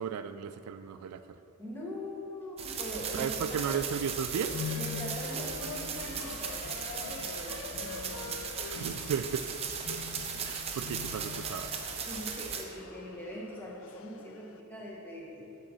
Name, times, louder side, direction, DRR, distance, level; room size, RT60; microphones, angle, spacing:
voice 1, 0.0-1.4 3.1-4.6 8.7-9.5 9.9-10.0 10.4-11.7, right 7 dB, 85° right, 11 dB, 0.3 m, -35 dB
voice 2, 1.6-3.8 4.8-8.4 12.0-15.5, equal, 10° left, -4 dB, 1.1 m, -42 dB
sound 1, 2.6-12.6, right 6 dB, 25° right, 0.5 m, -37 dB
sound 2, 4.4-14.6, left 6 dB, 60° left, 0.3 m, -43 dB
8.4 x 3.8 x 6.4 m, 2.8 s
head